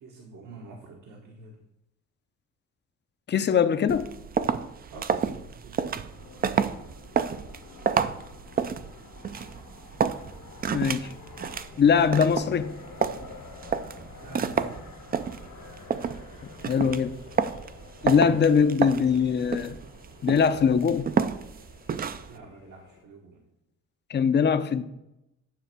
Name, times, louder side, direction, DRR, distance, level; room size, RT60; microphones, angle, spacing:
voice 1, 0.0-1.6 4.9-5.9 14.2-14.7 22.2-23.4, right 3 dB, 75° right, -1 dB, 1.5 m, -46 dB
voice 2, 3.3-4.1 10.7-11.1 11.8-12.8 16.4-17.2 18.0-19.7 20.2-21.1 24.1-24.8, left 6 dB, 35° left, 11 dB, 0.6 m, -22 dB
sound 1, 3.9-22.4, right 6 dB, 30° right, 0.4 m, -30 dB
sound 2, 6.1-23.0, left 4 dB, 80° left, 1.7 m, -49 dB
9.4 x 3.3 x 6.9 m, 0.89 s
cardioid pair, 90°, 30 cm